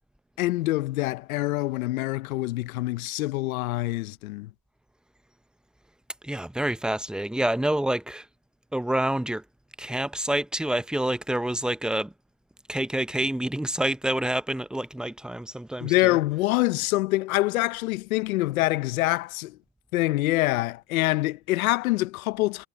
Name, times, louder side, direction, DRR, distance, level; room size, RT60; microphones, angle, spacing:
voice 1, 0.4-4.5 15.8-19.6 19.9-22.7, left 19 dB, 90° left, 0.8 m, -25 dB
voice 2, 6.2-8.3 8.7-9.5 9.8-12.1 12.7-16.2, right 1 dB, ahead, 0.7 m, -27 dB
supercardioid pair, 95°, 41 cm